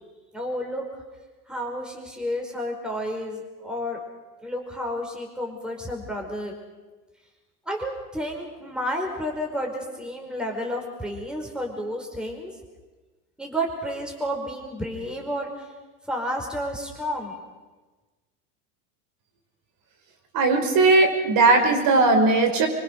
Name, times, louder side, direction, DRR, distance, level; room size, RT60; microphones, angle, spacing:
voice 1, 0.3-0.9 1.5-4.0 4.4-6.6 7.7-12.5 13.4-15.7 16.1-17.4, equal, ahead, 1 dB, 5.1 m, -31 dB
voice 2, 20.3-22.7, right 3 dB, 50° right, 3 dB, 5.5 m, -18 dB
25.5 x 24.0 x 6.6 m, 1.3 s
supercardioid pair, 115°, 46 cm